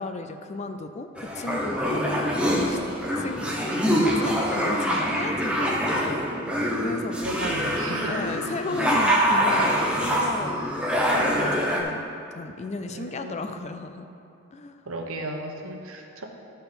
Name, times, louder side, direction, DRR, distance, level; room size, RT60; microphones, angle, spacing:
voice 1, 0.0-2.8 3.2-6.2 6.8-10.7 11.1-14.1 14.5-14.8, left 3 dB, 30° left, 8 dB, 0.4 m, -35 dB
sound 1, 1.2-11.8, equal, 5° right, 0.8 m, -25 dB
voice 2, 7.2-8.2 8.6-8.9 12.9-13.6 14.8-16.3, right 2 dB, 75° right, 2 dB, 1.0 m, -35 dB
12.5 x 4.4 x 5.2 m, 2.7 s
head